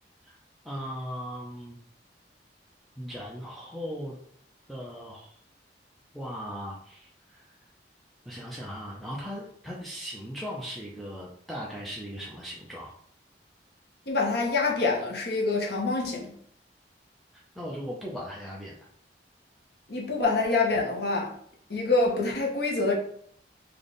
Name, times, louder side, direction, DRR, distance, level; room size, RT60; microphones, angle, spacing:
voice 1, 0.6-1.8 3.0-4.2 4.7-5.4 6.1-7.5 8.3-12.9 17.3-18.8, equal, ahead, -4 dB, 0.5 m, -38 dB
voice 2, 14.1-16.3 19.9-21.3 21.7-22.9, left 3 dB, 65° left, -1 dB, 0.9 m, -26 dB
3.4 x 2.3 x 3.9 m, 0.62 s
head